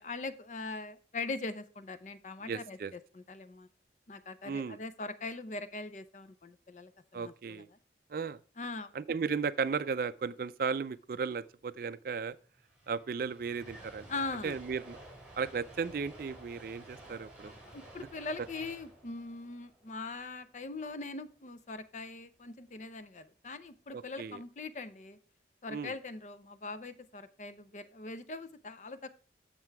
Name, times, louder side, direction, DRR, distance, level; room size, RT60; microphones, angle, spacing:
voice 1, 0.0-3.7 4.1-7.8 8.6-8.9 14.1-14.6 17.4-25.2 25.6-29.1, left 3 dB, 40° left, 0.6 m, -41 dB
voice 2, 2.5-2.9 4.5-4.8 7.1-7.7 8.1-8.4 8.9-12.3 12.9-14.1 14.4-15.0 15.4-17.5 23.9-24.4 25.7-25.9, right 5 dB, 55° right, 0.4 m, -35 dB
sound 1, 12.4-20.7, right 1 dB, 5° right, 3.1 m, -53 dB
7.6 x 6.7 x 4.6 m
head